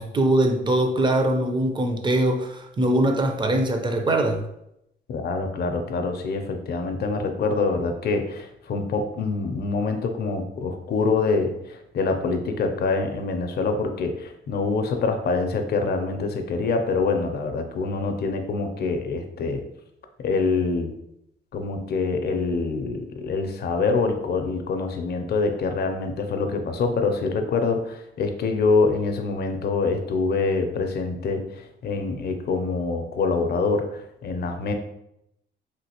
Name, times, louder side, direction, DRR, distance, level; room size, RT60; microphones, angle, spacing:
voice 1, 0.0-4.4, right 1 dB, 25° right, 4 dB, 0.5 m, -22 dB
voice 2, 5.1-19.6 20.2-20.9 21.5-34.7, left 4 dB, 55° left, 6 dB, 0.5 m, -25 dB
3.2 x 2.5 x 2.8 m, 0.79 s
cardioid pair, 90°, 20 cm